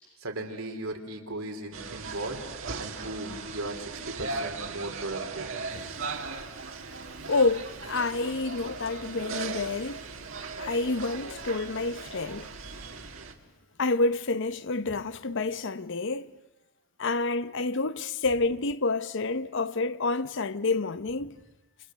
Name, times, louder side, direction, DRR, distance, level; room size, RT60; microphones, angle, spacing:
voice 1, 0.2-2.4 2.8-5.5 12.7-12.9, right 2 dB, 85° right, 3.5 m, -37 dB
sound 1, 1.7-13.3, right 4 dB, 70° right, 2.1 m, -38 dB
voice 2, 5.7-6.0 7.3-10.0 10.6-12.5 13.8-16.3 17.0-21.4, left 3 dB, 60° left, 0.8 m, -28 dB
28.5 x 28.0 x 6.6 m
head